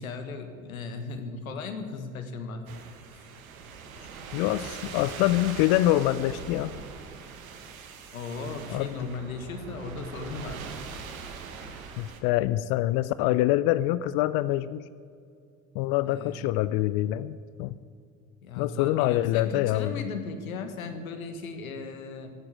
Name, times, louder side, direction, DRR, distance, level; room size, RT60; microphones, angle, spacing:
voice 1, 0.0-2.6 8.1-10.7 16.1-16.4 18.4-22.3, left 4 dB, 85° left, 7 dB, 1.6 m, -37 dB
sound 1, 2.7-12.2, right 5 dB, 80° right, 1.5 m, -41 dB
voice 2, 4.3-6.8 8.7-8.9 12.0-14.8 15.7-17.8 18.6-19.9, left 15 dB, 60° left, 16 dB, 0.6 m, -25 dB
16.5 x 8.7 x 8.6 m, 2.3 s
hypercardioid pair, 60°, 41 cm